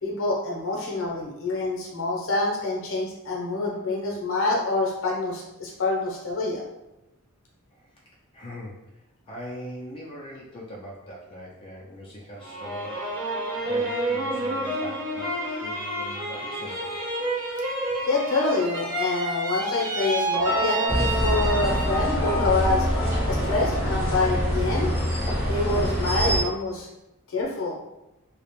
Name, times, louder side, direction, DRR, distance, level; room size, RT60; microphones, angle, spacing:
voice 1, 0.0-6.6 18.1-22.9 23.3-24.9 25.5-26.9 27.3-27.8, left 2 dB, 65° left, -2 dB, 0.7 m, -26 dB
voice 2, 8.3-8.9 9.3-13.3 13.6-16.9, equal, 25° left, -5 dB, 0.4 m, -41 dB
sound 1, 12.4-22.2 22.6-23.3, right 1 dB, 40° right, 0.9 m, -30 dB
sound 2, 20.3-24.6, equal, 85° right, 1.0 m, -31 dB
sound 3, 20.9-26.4, equal, 10° right, 0.8 m, -25 dB
2.4 x 2.0 x 2.9 m, 0.93 s
head